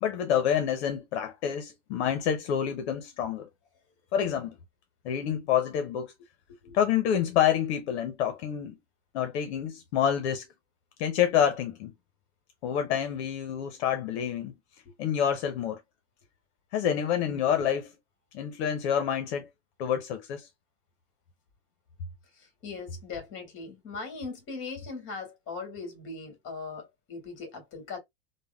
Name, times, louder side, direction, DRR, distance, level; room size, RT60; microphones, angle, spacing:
voice 1, 0.0-3.5 4.1-4.6 5.0-6.1 6.7-8.8 9.1-10.4 11.0-11.9 12.6-14.5 15.0-15.8 16.7-17.9 18.3-19.5 19.8-20.5, left 9 dB, 75° left, 0.7 m, -27 dB
voice 2, 22.3-28.0, left 4 dB, 35° left, 1.8 m, -40 dB
3.4 x 2.1 x 2.3 m
supercardioid pair, 145°, 33 cm